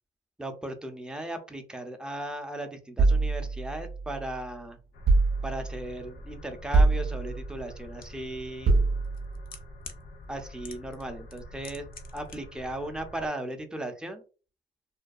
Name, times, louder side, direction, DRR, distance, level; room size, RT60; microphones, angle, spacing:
voice 1, 0.4-4.8 5.4-8.7 10.3-11.9 12.1-14.2, right 1 dB, 5° right, 6 dB, 0.5 m, -37 dB
sound 1, 3.0-4.4 5.1-5.9 6.7-7.6 8.7-9.5, right 3 dB, 55° right, 0.6 m, -24 dB
sound 2, 4.9-13.3, equal, 85° left, 0.7 m, -47 dB
sound 3, 8.0-8.1 9.0-10.0 10.6-11.0 11.3-12.4 12.6-12.7, left 5 dB, 45° left, 0.6 m, -44 dB
2.5 x 2.2 x 2.3 m, 0.35 s
cardioid pair, 90°, 20 cm